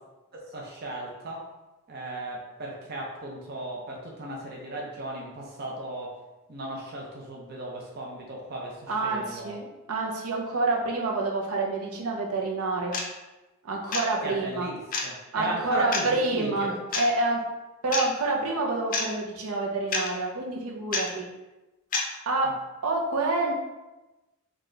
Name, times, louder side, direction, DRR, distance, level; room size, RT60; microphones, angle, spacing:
voice 1, 0.5-1.5 1.9-6.2 6.5-9.5 14.2-16.7 22.4-22.6, right 1 dB, 45° right, -2 dB, 0.6 m, -36 dB
voice 2, 8.9-13.0 13.6-14.7 15.3-17.4 17.8-21.3 22.3-22.5 22.8-23.5, right 2 dB, 80° right, -1 dB, 0.7 m, -28 dB
sound 1, 12.9-13.1 13.9-14.0 14.9-15.0 15.9-16.1 16.9-17.1 17.9-18.0 18.9-19.1 19.9-20.1 20.9-21.1 21.9-22.1, left 4 dB, 40° left, 0.5 m, -27 dB
4.0 x 2.4 x 3.2 m, 1.1 s
head